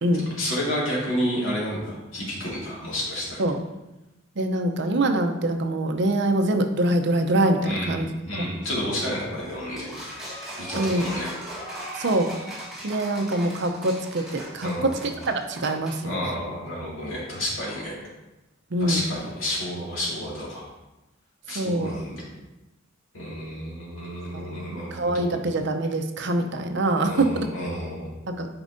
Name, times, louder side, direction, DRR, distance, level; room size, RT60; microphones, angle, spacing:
voice 1, 0.4-3.4 7.6-10.2 10.6-11.3 14.6-15.0 16.0-17.9 18.8-20.6 21.5-22.2 23.1-25.4 27.0-28.1, equal, 80° left, -5 dB, 2.2 m, -30 dB
voice 2, 4.4-8.1 8.4-8.5 10.8-11.1 11.9-12.6 12.8-14.9 15.2-16.1 18.7-19.0 21.5-21.9 24.3-27.5 28.3-28.5, right 1 dB, 60° right, 6 dB, 0.6 m, -24 dB
Clapping and Yelling, 9.8-16.0, right 1 dB, ahead, 1.8 m, -38 dB
8.6 x 5.2 x 2.6 m, 1.0 s
head